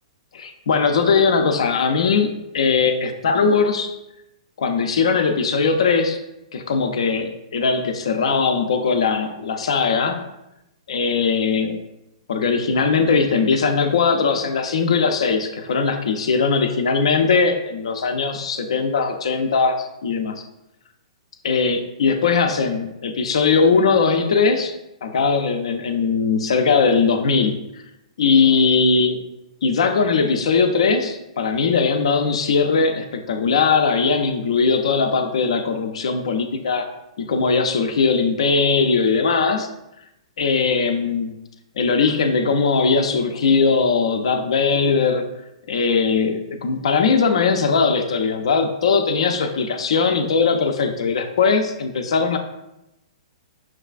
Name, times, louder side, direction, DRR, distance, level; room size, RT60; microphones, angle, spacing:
voice 1, 0.3-3.9 4.6-6.2 6.5-10.2 10.9-11.8 12.3-20.4 21.4-27.8 28.2-29.2 29.6-36.9 37.2-39.7 40.4-41.3 41.8-45.3 45.7-52.4, left 5 dB, 70° left, 7 dB, 0.5 m, -20 dB
5.9 x 2.3 x 2.4 m, 0.89 s
hypercardioid pair, 120°, 3 cm